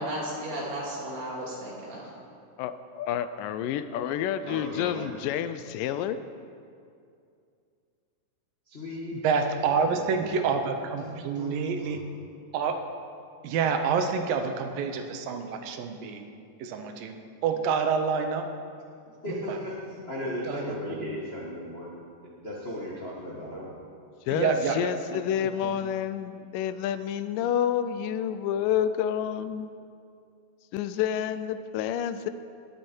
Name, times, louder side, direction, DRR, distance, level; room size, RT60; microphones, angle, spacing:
voice 1, 0.0-2.1, right 1 dB, 55° right, -5 dB, 3.7 m, -34 dB
voice 2, 2.6-6.2 24.3-29.7 30.7-32.3, left 9 dB, 85° left, 12 dB, 2.1 m, -29 dB
voice 3, 4.5-5.2 8.7-9.2 9.5-10.4 11.0-12.0 19.1-23.7, left 1 dB, 45° left, -5 dB, 0.7 m, -37 dB
voice 4, 9.1-12.0 12.5-12.8 13.4-16.2 16.6-17.2 17.4-18.5 19.3-19.6 20.5-21.1 24.3-25.2 25.6-25.8, right 5 dB, 85° right, 6 dB, 2.6 m, -28 dB
20.0 x 8.0 x 4.5 m, 2.4 s
omnidirectional pair, 3.9 m